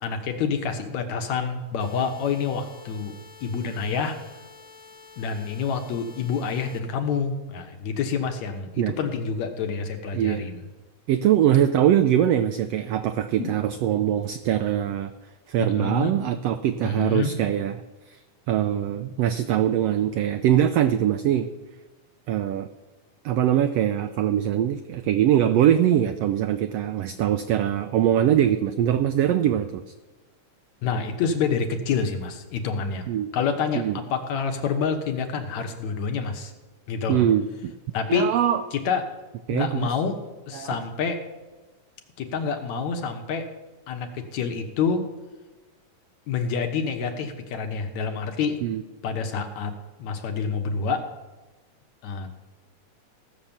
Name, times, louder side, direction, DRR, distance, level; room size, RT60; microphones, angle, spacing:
voice 1, 0.0-4.2 5.2-10.6 13.4-13.6 15.6-16.1 16.8-17.3 30.8-33.1 33.3-36.5 36.9-37.3 37.9-38.4 38.7-39.1 39.5-40.2 40.5-41.2 42.2-43.5 43.9-45.1 46.3-48.6 49.0-49.7 50.0-51.1 52.0-52.3, left 5 dB, 70° left, 5 dB, 2.3 m, -27 dB
sound 1, 1.8-6.8, left 5 dB, 40° left, 1.3 m, -49 dB
voice 2, 10.1-10.4 11.1-15.1 15.5-17.7 18.1-18.2 18.5-21.5 22.3-22.7 23.2-29.8 33.1-33.3 33.7-34.0 37.1-37.7 38.1-38.6 39.5-39.9 40.5-40.8 48.6-48.8, right 10 dB, 80° right, 9 dB, 1.4 m, -22 dB
16.0 x 6.7 x 7.2 m, 1.2 s
omnidirectional pair, 3.5 m